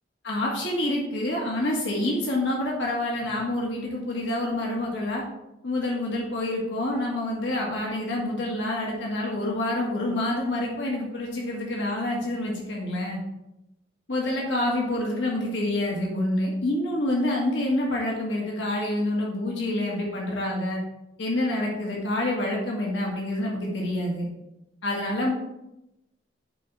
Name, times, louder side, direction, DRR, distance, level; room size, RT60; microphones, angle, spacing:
voice 1, 0.2-5.2 5.6-13.2 14.1-20.8 21.2-24.3 24.8-25.3, left 1 dB, 90° left, -2 dB, 1.7 m, -27 dB
9.7 x 4.0 x 4.7 m, 0.89 s
head